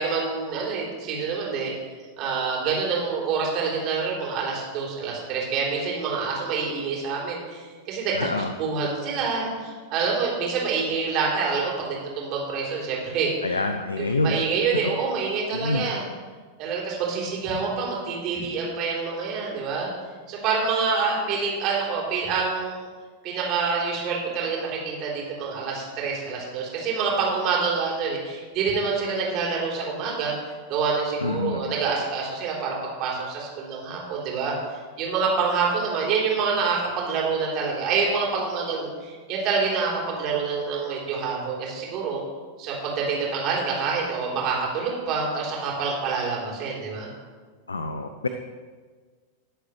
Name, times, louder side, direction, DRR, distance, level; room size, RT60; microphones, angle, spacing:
voice 1, 0.0-1.7 2.2-8.3 8.6-13.6 14.0-16.0 16.6-19.9 20.3-22.9 23.2-30.3 30.7-32.7 33.0-34.5 35.0-42.2 42.6-47.1, right 5 dB, 40° right, -3 dB, 3.7 m, -27 dB
voice 2, 8.1-8.5 13.4-14.4 15.5-15.9 31.2-31.6 47.7-48.3, left 2 dB, 75° left, 7 dB, 0.6 m, -26 dB
18.5 x 7.9 x 3.3 m, 1.5 s
figure-of-eight pair, 90°, 0 cm